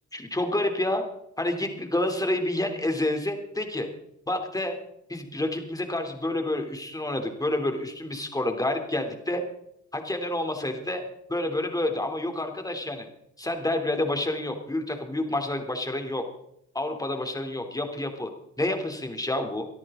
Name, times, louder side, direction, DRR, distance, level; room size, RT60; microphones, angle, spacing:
voice 1, 0.1-1.0 1.4-3.9 4.3-4.8 5.1-9.4 9.9-11.0 11.3-13.1 13.4-16.2 16.8-18.3 18.6-19.7, left 1 dB, 10° left, 4 dB, 3.3 m, -28 dB
23.5 x 13.5 x 3.9 m, 0.77 s
cardioid pair, 90°, 30 cm